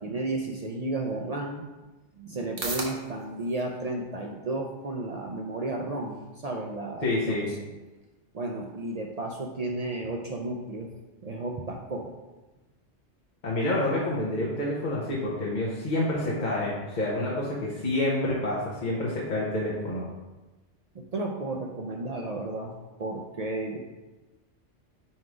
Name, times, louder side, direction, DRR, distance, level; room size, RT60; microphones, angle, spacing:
voice 1, 0.0-1.6 2.2-7.7 8.3-10.9 11.2-12.1 20.9-23.8, right 2 dB, 50° right, 1 dB, 0.4 m, -33 dB
sound 1, 1.7-18.1, right 2 dB, 35° right, 0.9 m, -48 dB
voice 2, 7.0-7.5 13.4-20.1, left 1 dB, 45° left, -6 dB, 1.0 m, -28 dB
4.7 x 4.3 x 4.8 m, 1.1 s
omnidirectional pair, 1.2 m